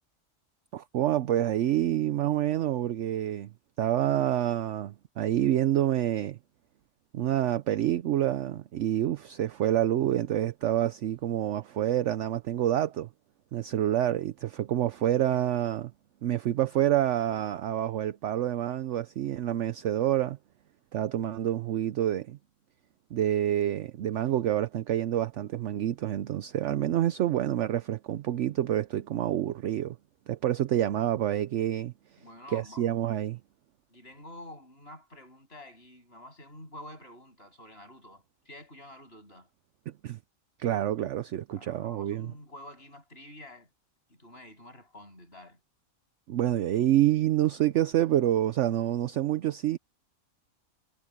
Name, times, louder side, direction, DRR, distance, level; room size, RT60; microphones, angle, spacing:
voice 1, 0.7-3.5 3.8-6.4 7.1-13.1 13.5-15.9 16.2-20.4 20.9-22.4 23.1-30.0 30.3-31.9 32.5-33.4 40.0-40.2 40.6-42.3 46.3-49.8, right 12 dB, 65° right, 0.9 m, -27 dB
voice 2, 32.2-32.9 33.9-39.5 41.5-43.7 44.1-45.6, left 1 dB, 45° left, 8.4 m, -48 dB
omnidirectional pair, 1.5 m